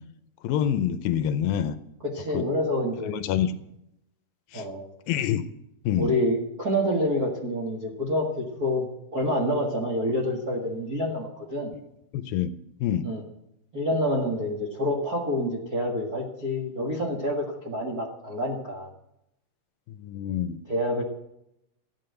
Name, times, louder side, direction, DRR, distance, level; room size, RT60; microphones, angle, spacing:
voice 1, 0.4-1.8 2.3-2.4 3.1-3.5 4.5-4.6 5.1-5.4 5.9-6.2 11.7-11.8 12.1-12.5 12.8-13.1 20.0-20.6, left 10 dB, 80° left, 10 dB, 2.3 m, -26 dB
voice 2, 2.0-3.2 4.5-4.8 5.9-8.9 9.1-11.7 13.0-13.2 13.7-18.9 20.7-21.0, equal, 45° right, -1 dB, 1.2 m, -27 dB
13.5 x 9.4 x 7.8 m, 0.82 s
omnidirectional pair, 4.4 m